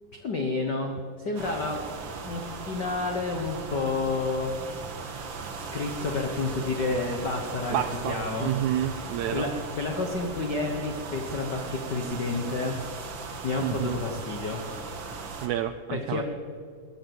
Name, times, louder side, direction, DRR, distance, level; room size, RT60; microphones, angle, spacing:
voice 1, 0.1-1.8 2.2-4.5 5.7-8.5 9.3-12.8 13.4-14.6 15.9-16.2, left 3 dB, 75° left, 2 dB, 0.9 m, -30 dB
sound 1, 1.3-15.5, right 4 dB, 50° right, 1.6 m, -38 dB
voice 2, 7.7-9.5 13.6-14.0 15.4-16.2, right 11 dB, 85° right, 10 dB, 1.7 m, -29 dB
20.5 x 7.7 x 7.9 m, 2.3 s
omnidirectional pair, 3.9 m